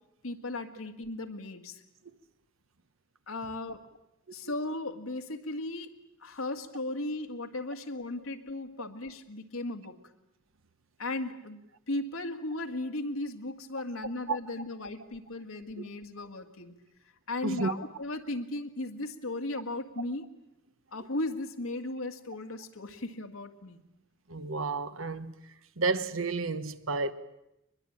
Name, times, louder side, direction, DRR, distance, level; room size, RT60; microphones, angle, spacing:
voice 1, 0.2-1.8 3.3-3.8 4.3-10.0 11.0-11.6 11.9-16.7 17.3-20.3 20.9-23.8, left 2 dB, 90° left, 1.9 m, -36 dB
voice 2, 17.4-17.7 24.3-25.3 25.8-27.1, right 3 dB, 75° right, 1.1 m, -31 dB
23.5 x 21.5 x 8.7 m
head